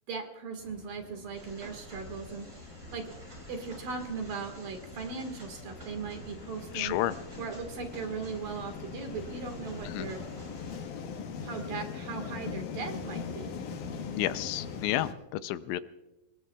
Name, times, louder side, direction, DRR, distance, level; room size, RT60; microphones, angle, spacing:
voice 1, 0.1-2.6 2.9-3.1 3.5-6.9 7.4-10.3 11.4-13.6, right 5 dB, 55° right, 5 dB, 3.1 m, -38 dB
sound 1, 0.6-15.1, left 5 dB, 60° left, 2.3 m, -42 dB
sound 2, 1.3-10.8, right 1 dB, 20° right, 6.7 m, -50 dB
voice 2, 6.7-7.1 9.9-10.1 14.2-15.8, left 14 dB, 85° left, 12 dB, 3.0 m, -31 dB
27.0 x 21.0 x 2.4 m, 0.95 s
omnidirectional pair, 5.3 m